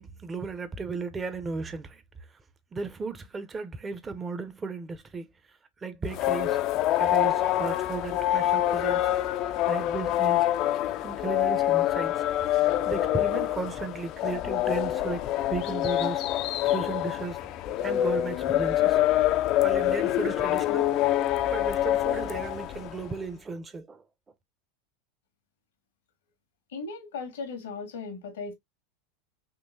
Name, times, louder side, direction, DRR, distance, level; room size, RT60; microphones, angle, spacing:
voice 1, 0.0-2.0 2.7-5.3 5.8-6.6 6.9-9.1 9.7-10.5 11.0-12.2 12.8-15.2 15.5-16.3 16.6-17.4 17.8-19.0 19.6-20.9 21.5-24.0, right 4 dB, 20° right, 0.6 m, -35 dB
sound 1, 6.1-23.1, left 13 dB, 45° left, 0.4 m, -26 dB
voice 2, 26.7-28.5, left 4 dB, 80° left, 1.2 m, -37 dB
3.7 x 2.7 x 2.6 m
hypercardioid pair, 115°, 0 cm